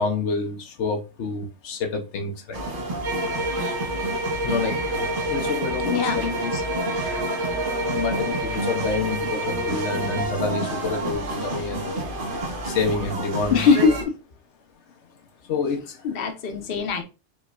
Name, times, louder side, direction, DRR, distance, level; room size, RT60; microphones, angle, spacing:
voice 1, 0.0-2.6 4.4-4.8 5.2-6.8 7.4-7.5 7.8-11.9 12.6-13.7 15.5-16.0 16.7-17.0, left 4 dB, 85° left, 1.1 m, -28 dB
sound 1, 2.5-14.0, right 2 dB, 50° right, 1.0 m, -30 dB
sound 2, 3.0-10.4, right 1 dB, 75° right, 1.3 m, -29 dB
voice 2, 5.8-6.4 13.5-14.1 16.0-17.0, left 5 dB, 60° left, 1.0 m, -21 dB
5.3 x 3.1 x 2.4 m
omnidirectional pair, 1.1 m